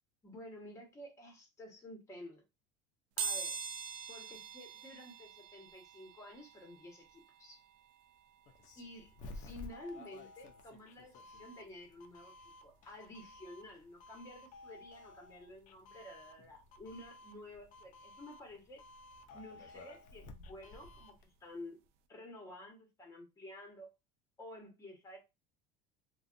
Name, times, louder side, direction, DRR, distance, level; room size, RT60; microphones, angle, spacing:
voice 1, 0.2-2.4 3.2-3.6 4.1-7.6 8.8-12.3 12.6-18.8 19.3-21.8 22.1-23.9 24.4-25.2, left 1 dB, 15° left, 1.2 m, -51 dB
sound 1, 3.2-13.8 14.3-14.4 15.6-15.7 15.9-18.0 18.4-21.0 21.4-21.6 21.9-22.0, right 6 dB, 70° right, 0.5 m, -47 dB
Doorbell, 8.5-21.3, left 2 dB, 45° left, 0.5 m, -54 dB
2.5 x 2.3 x 2.5 m
supercardioid pair, 125°, 18 cm